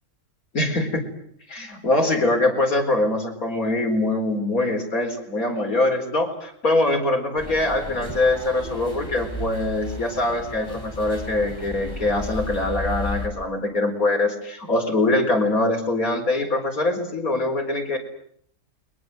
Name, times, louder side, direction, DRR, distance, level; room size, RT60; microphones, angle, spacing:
voice 1, 0.5-1.0 1.5-18.0, left 2 dB, 70° left, 4 dB, 4.7 m, -23 dB
sound 1, 7.4-13.3, left 2 dB, 20° left, 5.8 m, -34 dB
29.5 x 22.5 x 7.8 m, 0.66 s
omnidirectional pair, 1.5 m